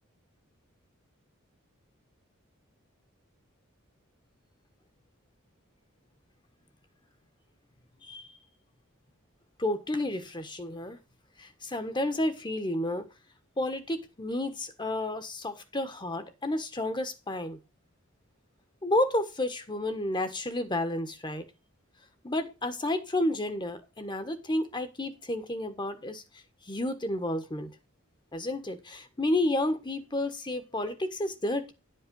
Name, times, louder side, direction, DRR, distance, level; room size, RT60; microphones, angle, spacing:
voice 1, 9.6-11.0 11.4-13.1 13.6-17.6 18.8-21.5 22.2-26.2 26.7-27.7 28.3-31.7, left 1 dB, 20° left, 1.3 m, -31 dB
11.0 x 5.6 x 5.4 m
head